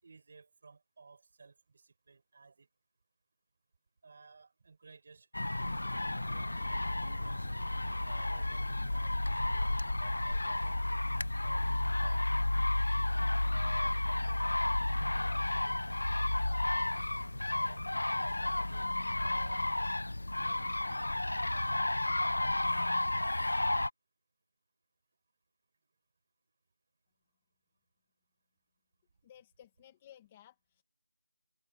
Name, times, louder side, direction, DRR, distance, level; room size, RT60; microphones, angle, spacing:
voice 1, 0.0-2.7 4.0-5.5 6.3-7.4 8.0-11.6 12.0-12.3 13.4-14.6 14.9-15.8 17.1-18.9 19.2-19.9 20.4-21.1 21.5-22.6, right 4 dB, 25° right, 4.4 m, -57 dB
sound 1, 5.3-23.9, left 2 dB, 75° left, 0.8 m, -32 dB
voice 2, 29.2-30.8, left 11 dB, 10° left, 1.1 m, -57 dB
figure-of-eight pair, 180°, 0 cm